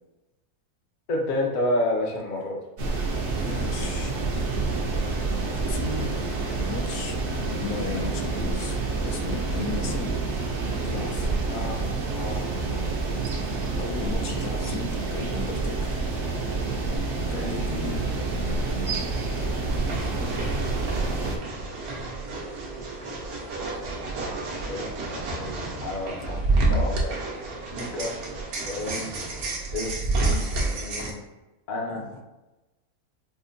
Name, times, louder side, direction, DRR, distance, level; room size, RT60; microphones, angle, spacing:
voice 1, 1.1-2.6 11.5-11.8 12.1-12.4 17.2-17.5 19.4-19.5 24.7-25.5 25.8-26.4 26.7-27.1 27.7-28.1 28.7-29.1 29.7-30.0 30.6-31.2 31.7-32.0, left 1 dB, 55° left, 0 dB, 0.6 m, -30 dB
sound 1, 2.8-21.4, right 3 dB, 60° right, 0.8 m, -28 dB
voice 2, 3.4-4.1 5.7-6.2 6.7-8.8 9.0-10.2 10.8-11.4 13.8-16.1 17.3-18.0 26.3-26.7 28.8-29.0 31.9-32.2, left 4 dB, 80° left, 4 dB, 1.1 m, -35 dB
sound 2, 19.7-31.1, right 2 dB, 75° right, 1.2 m, -29 dB
5.1 x 2.1 x 2.5 m, 1.1 s
omnidirectional pair, 1.6 m